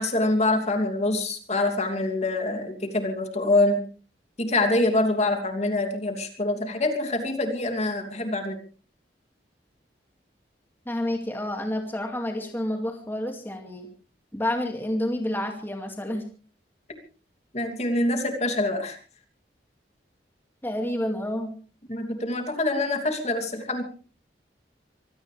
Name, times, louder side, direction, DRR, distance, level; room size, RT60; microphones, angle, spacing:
voice 1, 0.0-3.8 4.4-8.6 17.5-19.0 21.9-23.8, left 2 dB, 40° left, 5 dB, 2.8 m, -25 dB
voice 2, 10.9-13.9 14.3-16.3 20.6-21.5, left 1 dB, 10° left, 3 dB, 2.3 m, -29 dB
25.0 x 17.0 x 3.4 m, 0.39 s
head